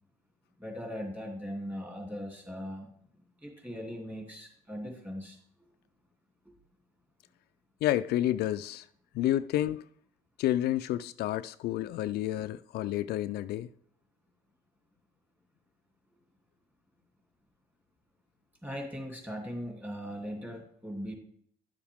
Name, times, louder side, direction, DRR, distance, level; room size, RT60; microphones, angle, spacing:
voice 1, 0.6-2.9 3.4-5.4 18.6-21.1, equal, 10° right, 2.7 m, -39 dB
voice 2, 7.8-8.9 9.1-9.9 10.4-13.7, left 13 dB, 70° left, 0.4 m, -30 dB
11.0 x 7.1 x 3.5 m
cardioid pair, 110°, 17 cm